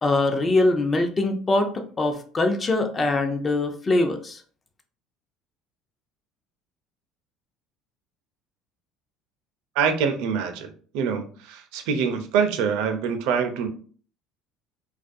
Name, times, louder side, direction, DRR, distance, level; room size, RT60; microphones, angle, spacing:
voice 1, 0.0-4.4, left 2 dB, 30° left, 6 dB, 0.5 m, -23 dB
voice 2, 9.8-13.7, right 6 dB, 75° right, 6 dB, 0.5 m, -25 dB
2.3 x 2.2 x 2.5 m, 0.43 s
supercardioid pair, 85°, 0 cm